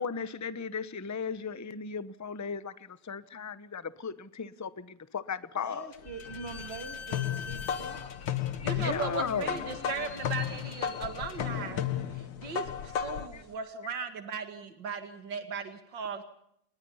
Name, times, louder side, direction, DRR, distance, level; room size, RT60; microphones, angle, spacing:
voice 1, 0.0-5.9 8.7-9.5 13.3-13.4, left 6 dB, 25° left, 0.4 m, -36 dB
voice 2, 5.6-8.1, right 4 dB, 30° right, 3.0 m, -44 dB
Slam / Squeak, 5.9-13.2, left 5 dB, 45° left, 1.6 m, -44 dB
sound 1, 6.5-13.4, left 10 dB, 85° left, 2.1 m, -34 dB
voice 3, 8.6-11.8 12.1-16.2, right 5 dB, 70° right, 2.8 m, -37 dB
29.0 x 21.5 x 5.6 m
omnidirectional pair, 2.1 m